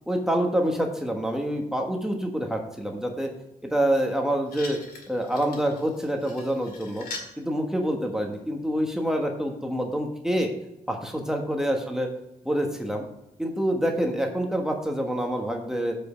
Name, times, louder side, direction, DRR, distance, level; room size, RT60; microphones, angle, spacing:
voice 1, 0.1-3.3 3.6-4.8 5.1-7.1 7.4-10.5 10.9-12.1 12.4-13.1 13.4-15.9, equal, 5° right, 2 dB, 1.3 m, -26 dB
sound 1, 4.5-7.3 8.3-8.4, left 3 dB, 80° left, 2.0 m, -42 dB
7.5 x 5.3 x 7.3 m, 0.94 s
cardioid pair, 100°, 15 cm